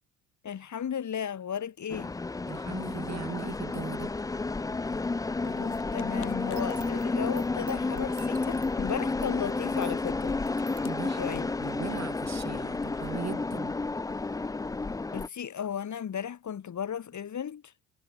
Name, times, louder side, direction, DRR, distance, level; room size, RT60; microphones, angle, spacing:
voice 1, 0.4-2.1 5.4-10.4 11.2-11.5 15.1-17.7, left 8 dB, 45° left, 2.1 m, -35 dB
sound 1, 1.9-15.3, left 3 dB, 10° left, 0.4 m, -31 dB
voice 2, 2.5-4.1 10.8-13.8, right 7 dB, 40° right, 3.4 m, -39 dB
sound 2, 4.9-12.4, left 14 dB, 70° left, 6.4 m, -54 dB
sound 3, 6.6-12.1 12.4-12.5, right 28 dB, 85° right, 7.6 m, -55 dB
supercardioid pair, 65°, 41 cm